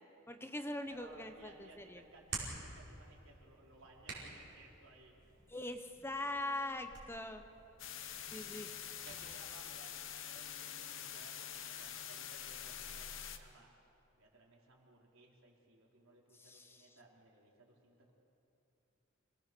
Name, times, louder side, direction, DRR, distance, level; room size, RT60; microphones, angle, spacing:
voice 1, 0.3-2.0 5.5-7.4 8.3-8.7 16.4-16.9, left 1 dB, 10° left, 7 dB, 0.9 m, -42 dB
Hands, 0.8-9.3, right 4 dB, 55° right, 5.2 m, -51 dB
voice 2, 0.8-5.2 8.2-8.7 9.0-13.7 14.2-18.1, right 2 dB, 80° right, -1 dB, 4.1 m, -61 dB
sound 1, 7.8-13.4, left 9 dB, 65° left, 1.2 m, -46 dB
27.5 x 19.0 x 6.9 m, 2.9 s
head